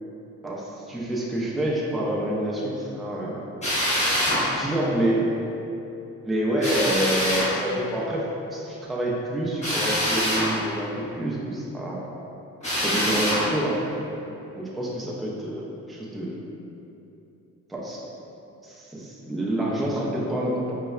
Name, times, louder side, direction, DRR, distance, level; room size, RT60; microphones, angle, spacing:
voice 1, 0.4-3.4 4.4-5.3 6.2-12.0 12.8-13.8 14.5-16.4 17.7-18.0 18.6-20.7, right 1 dB, ahead, -5 dB, 0.4 m, -27 dB
Drill, 3.6-4.4 6.6-7.5 9.6-10.5 12.6-13.4, equal, 25° left, 1.2 m, -24 dB
5.1 x 2.1 x 2.3 m, 2.9 s
cardioid pair, 90°, 30 cm